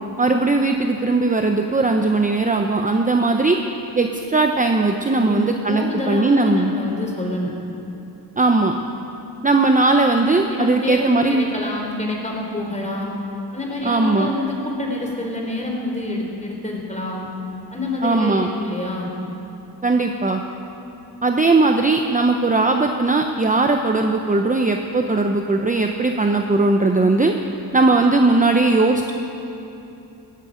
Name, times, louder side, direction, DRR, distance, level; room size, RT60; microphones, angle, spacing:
voice 1, 0.2-3.6 4.0-6.7 8.4-8.7 9.4-11.5 13.8-14.3 18.0-18.5 19.8-20.4 21.2-27.3 27.7-29.1, right 3 dB, 20° right, 4 dB, 0.8 m, -18 dB
voice 2, 5.1-5.4 5.7-7.5 10.5-13.2 13.5-17.3 17.7-19.1, left 2 dB, 15° left, -1 dB, 3.6 m, -27 dB
18.5 x 13.5 x 5.1 m, 2.8 s
cardioid pair, 90°, 41 cm